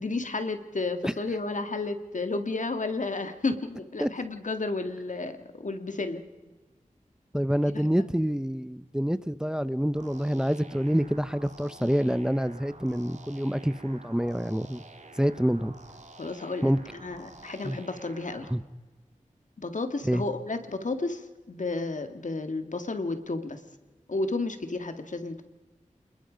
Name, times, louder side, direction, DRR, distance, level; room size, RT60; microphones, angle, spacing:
voice 1, 0.0-6.2 7.7-8.1 16.2-18.5 19.6-23.6 24.1-25.4, left 3 dB, 65° left, 8 dB, 2.0 m, -32 dB
voice 2, 7.3-14.8 15.2-15.7 16.6-16.8 17.7-17.8 18.5-18.6 20.1-20.2, equal, 5° right, 15 dB, 0.7 m, -27 dB
sound 1, 10.0-18.5, right 2 dB, 60° right, 2.3 m, -50 dB
28.0 x 21.0 x 5.1 m, 1.3 s
wide cardioid pair, 55°, 14 cm